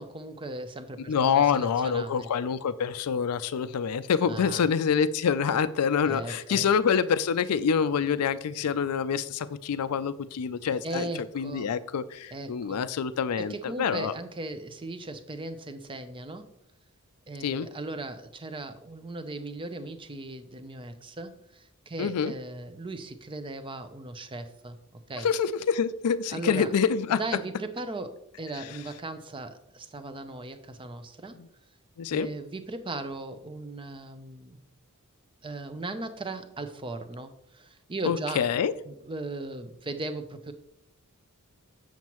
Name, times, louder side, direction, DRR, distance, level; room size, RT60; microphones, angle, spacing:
voice 1, 0.0-2.3 4.2-4.7 6.1-6.7 10.8-11.7 12.3-12.8 13.4-16.5 17.3-24.8 25.1-25.3 26.3-26.7 27.1-31.4 32.1-34.6 35.4-38.4 38.9-40.5, right 2 dB, 25° right, 9 dB, 0.6 m, -38 dB
voice 2, 1.1-11.1 11.3-14.1 17.4-17.7 22.0-22.3 25.2-27.2 31.4-31.5 32.0-32.3 38.0-38.7, left 6 dB, 80° left, 15 dB, 0.4 m, -26 dB
7.4 x 7.1 x 3.0 m, 0.79 s
head